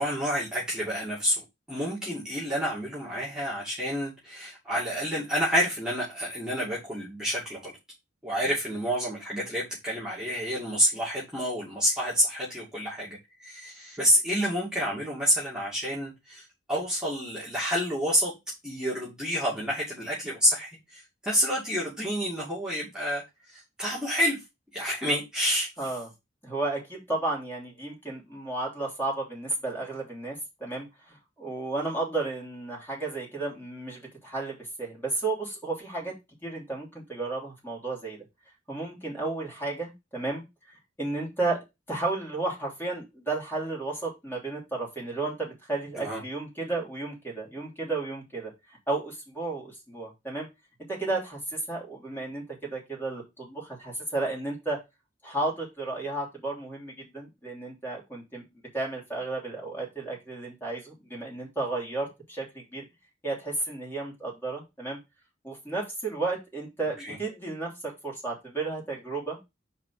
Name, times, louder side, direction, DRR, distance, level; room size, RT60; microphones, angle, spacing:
voice 1, 0.0-7.7 8.2-16.4 16.7-18.3 18.6-23.2 23.5-24.4 24.7-25.7 46.0-46.2 67.0-67.2, equal, 5° right, 2.5 m, -28 dB
voice 2, 25.8-26.1 26.4-38.2 38.7-40.4 41.0-48.5 48.9-50.5 50.9-54.8 55.2-58.4 58.7-62.8 63.2-65.0 65.4-69.5, right 2 dB, 10° left, 3.2 m, -33 dB
4.9 x 4.4 x 6.0 m
head